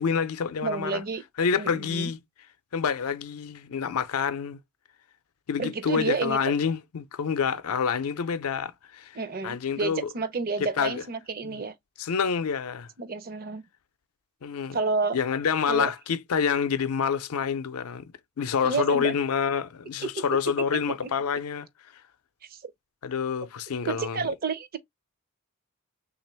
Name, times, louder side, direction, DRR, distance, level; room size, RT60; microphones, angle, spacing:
voice 1, 0.0-1.0 1.4-2.2 2.7-4.6 5.5-9.2 9.4-10.1 10.8-11.0 11.4-11.6 12.0-12.9 14.4-14.8 15.1-18.1 18.4-21.7 23.0-24.3, left 6 dB, 75° left, 0.5 m, -27 dB
voice 2, 0.6-1.2 1.6-2.1 5.6-6.5 9.1-11.7 13.0-13.6 14.7-15.2 15.7-15.9 18.6-19.1 20.0-20.2 20.7-20.8 22.5-22.7 23.9-24.8, right 4 dB, 40° right, 0.5 m, -30 dB
3.3 x 2.4 x 4.3 m
head